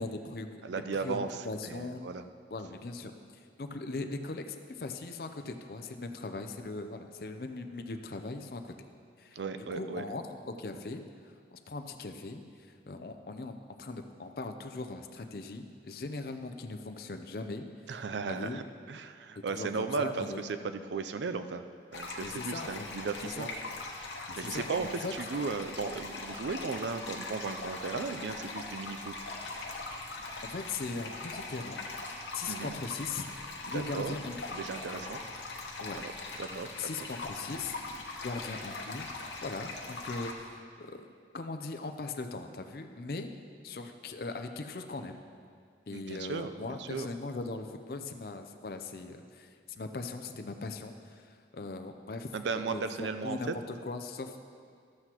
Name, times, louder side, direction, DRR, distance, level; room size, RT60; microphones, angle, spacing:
voice 1, 0.0-0.6 0.9-1.2 1.4-2.0 2.5-3.1 3.6-8.7 9.2-18.6 19.4-20.4 22.2-22.9 23.2-23.5 24.3-25.1 30.4-31.8 32.3-33.4 33.7-34.4 35.8-36.0 36.8-37.8 38.2-41.1 41.3-43.3 43.6-45.2 45.9-52.3 52.7-54.4, left 3 dB, 55° left, 6 dB, 0.5 m, -40 dB
voice 2, 0.6-2.2 9.4-10.0 17.9-18.6 18.9-21.6 21.9-23.5 24.3-29.1 32.5-32.7 33.7-34.1 34.5-35.2 36.0-36.1 36.4-36.7 37.0-37.1 45.9-47.1 52.3-53.5, right 4 dB, 80° right, 9 dB, 0.4 m, -36 dB
sound 1, 21.9-40.3, left 3 dB, 80° left, 1.0 m, -41 dB
12.5 x 7.9 x 3.0 m, 2.2 s
head